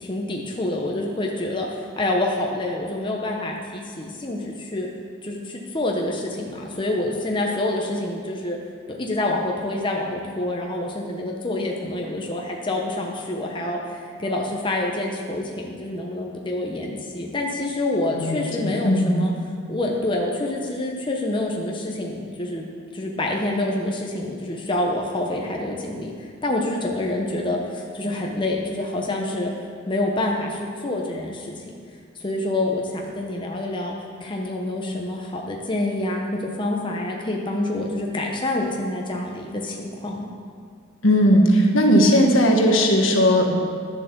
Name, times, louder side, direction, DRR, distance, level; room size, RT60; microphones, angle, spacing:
voice 1, 0.0-4.9 5.2-8.6 8.9-19.3 19.7-22.7 22.9-29.5 29.9-31.6 32.2-33.9 34.2-40.3, left 1 dB, 25° left, 0 dB, 0.9 m, -27 dB
voice 2, 18.1-19.2 41.0-43.6, equal, 70° left, 2 dB, 1.4 m, -17 dB
10.5 x 7.5 x 6.8 m, 2.1 s
head